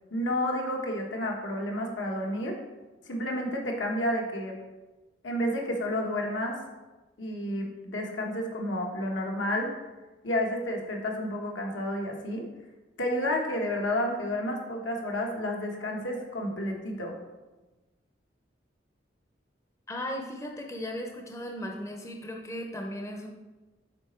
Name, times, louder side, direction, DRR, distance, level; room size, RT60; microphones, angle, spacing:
voice 1, 0.1-2.6 3.0-4.6 5.2-6.6 7.2-9.7 10.2-12.4 13.0-17.1, left 1 dB, 80° left, 0 dB, 1.2 m, -30 dB
voice 2, 19.9-23.3, left 1 dB, 15° left, 1 dB, 0.6 m, -36 dB
6.7 x 4.2 x 4.3 m, 1.2 s
head